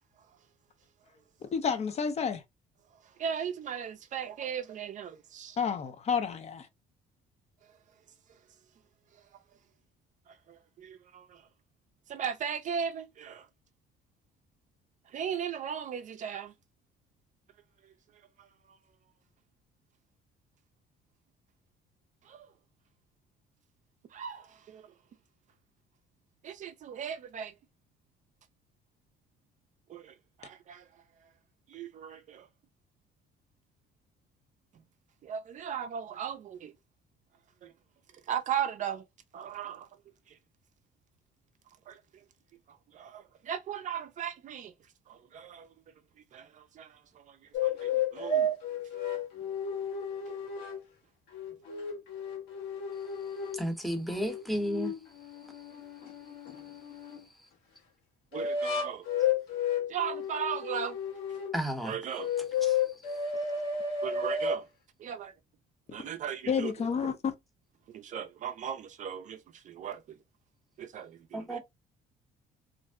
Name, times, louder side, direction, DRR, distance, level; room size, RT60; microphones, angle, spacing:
voice 1, 1.5-2.4 5.6-6.7 66.5-67.3, left 6 dB, 40° left, 0.5 m, -30 dB
voice 2, 3.2-5.6 10.5-11.4 12.1-13.5 15.1-16.5 22.3-22.5 24.1-24.9 26.4-27.5 29.9-30.1 30.4-30.8 31.7-32.5 35.2-36.7 37.6-37.7 38.3-39.0 39.3-39.9 41.9-42.0 42.9-44.7 45.1-45.7 46.3-46.9 47.2-47.4 47.6-48.5 58.3-59.1 59.9-61.0 61.8-62.3 64.0-64.6 65.0-65.3 65.9-66.7 67.0-67.2 67.9-69.4 69.6-70.2 70.8-71.6, right 8 dB, 50° right, 0.4 m, -37 dB
sound 1, 47.5-50.8 51.3-53.6 54.1-57.2 58.3-61.6 62.2-64.6, left 5 dB, 85° left, 1.0 m, -32 dB
voice 3, 53.5-54.9 61.5-62.0 62.6-62.8 63.1-63.2 71.3-71.6, equal, ahead, 0.7 m, -32 dB
2.5 x 2.0 x 3.5 m
cardioid pair, 110°, 17 cm